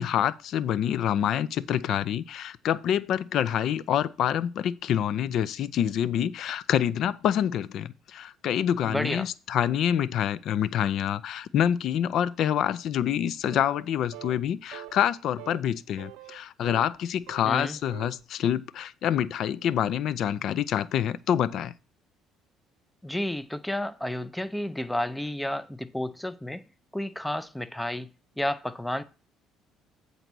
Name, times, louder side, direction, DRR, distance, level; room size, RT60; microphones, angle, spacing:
voice 1, 0.0-21.7, left 10 dB, 60° left, 0.4 m, -27 dB
voice 2, 8.9-9.3 17.4-17.8 23.0-26.6 26.9-28.1 28.4-29.0, left 1 dB, 5° left, 0.5 m, -31 dB
sound 1, 13.4-13.9 14.1-14.4 14.7-15.1 15.4-15.6 16.0-17.0 17.2-18.2, right 14 dB, 90° right, 0.5 m, -44 dB
7.9 x 4.1 x 6.0 m
cardioid pair, 130°, 0 cm